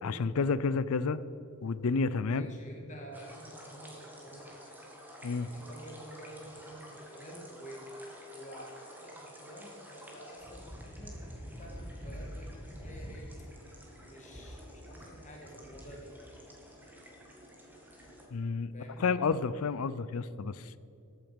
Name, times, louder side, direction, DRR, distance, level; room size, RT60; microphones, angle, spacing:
voice 1, 0.0-1.2 1.6-2.5 5.2-5.5 18.3-18.7 19.0-20.8, left 4 dB, 80° left, 16 dB, 0.5 m, -30 dB
voice 2, 2.3-4.8 5.5-7.9 8.3-13.3 14.0-16.1 18.7-19.1, equal, 35° left, 0 dB, 2.4 m, -49 dB
sound 1, 3.1-18.3, equal, 10° right, 1.8 m, -48 dB
14.5 x 8.9 x 5.2 m, 2.7 s
head